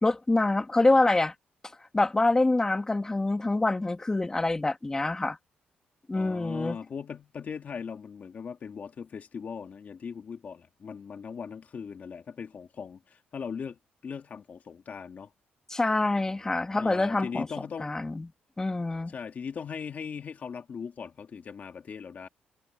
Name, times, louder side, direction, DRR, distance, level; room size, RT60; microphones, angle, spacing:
voice 1, 0.0-1.3 1.9-5.4 6.1-6.8 15.7-17.5 17.8-18.3 18.6-19.1, left 2 dB, 15° left, 2.1 m, -25 dB
voice 2, 6.1-15.3 16.8-17.9 19.1-22.3, left 6 dB, 45° left, 2.0 m, -39 dB
cardioid pair, 110°, 4 cm